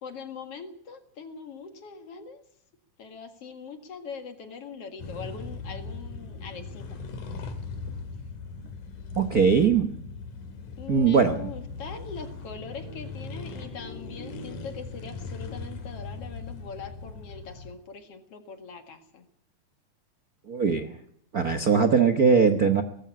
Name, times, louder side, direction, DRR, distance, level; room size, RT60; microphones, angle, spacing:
voice 1, 0.0-2.4 3.0-7.0 9.4-9.6 10.8-19.3, left 5 dB, 55° left, 7 dB, 2.7 m, -42 dB
sound 1, 5.0-17.7, left 4 dB, 80° left, 3.7 m, -39 dB
voice 2, 9.2-9.9 10.9-11.4 20.5-20.9 21.3-22.8, right 6 dB, 65° right, 7 dB, 0.9 m, -20 dB
19.0 x 15.5 x 8.7 m, 0.68 s
omnidirectional pair, 3.5 m